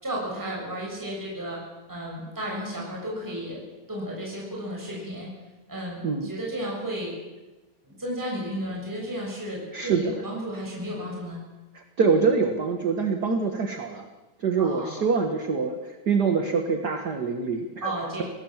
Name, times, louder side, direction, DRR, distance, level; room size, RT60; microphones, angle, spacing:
voice 1, 0.0-1.6 1.9-3.6 3.9-5.3 5.7-7.1 7.8-11.4 14.6-15.0 17.8-18.2, right 1 dB, 5° right, -3 dB, 6.7 m, -33 dB
voice 2, 9.7-10.1 11.7-14.1 14.4-17.9, right 5 dB, 40° right, 5 dB, 1.7 m, -25 dB
26.5 x 18.5 x 7.4 m, 1.1 s
omnidirectional pair, 3.4 m